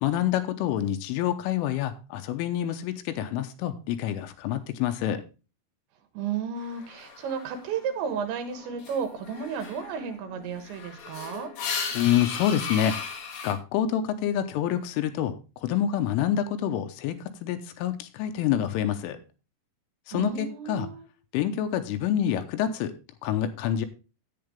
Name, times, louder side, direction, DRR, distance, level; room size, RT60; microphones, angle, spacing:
voice 1, 0.0-5.2 11.9-12.9 13.4-15.4 15.6-17.2 17.4-19.2 20.1-20.9 21.3-22.9 23.2-23.9, left 10 dB, 85° left, 9 dB, 3.3 m, -27 dB
voice 2, 6.2-11.5 20.1-21.1, right 7 dB, 70° right, 7 dB, 3.5 m, -33 dB
sound 1, 6.6-7.9 8.3-13.5, left 5 dB, 55° left, 3.0 m, -37 dB
10.5 x 8.9 x 3.4 m, 0.31 s
omnidirectional pair, 5.8 m